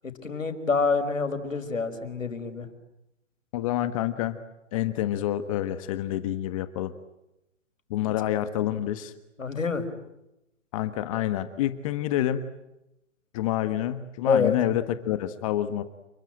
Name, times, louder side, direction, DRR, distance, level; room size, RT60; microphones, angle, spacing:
voice 1, 0.2-2.7 9.4-9.8 14.3-14.5, left 4 dB, 85° left, 8 dB, 5.4 m, -26 dB
voice 2, 3.5-4.4 4.7-6.9 7.9-9.1 10.7-12.4 13.3-15.8, left 12 dB, 25° left, 11 dB, 1.4 m, -28 dB
29.5 x 22.5 x 8.9 m, 0.88 s
hypercardioid pair, 145°, 38 cm